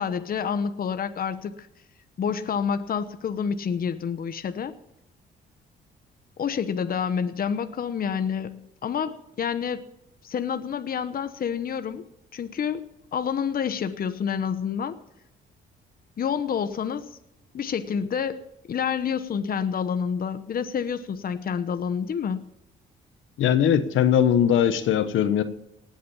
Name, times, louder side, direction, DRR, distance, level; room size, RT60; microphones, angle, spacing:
voice 1, 0.0-1.7 2.2-4.7 6.4-9.9 10.2-12.1 12.3-15.0 16.2-17.2 17.5-22.5, left 7 dB, 45° left, 1.0 m, -28 dB
voice 2, 23.4-25.4, left 9 dB, 80° left, 1.3 m, -20 dB
18.5 x 8.5 x 7.2 m
cardioid pair, 90°, 20 cm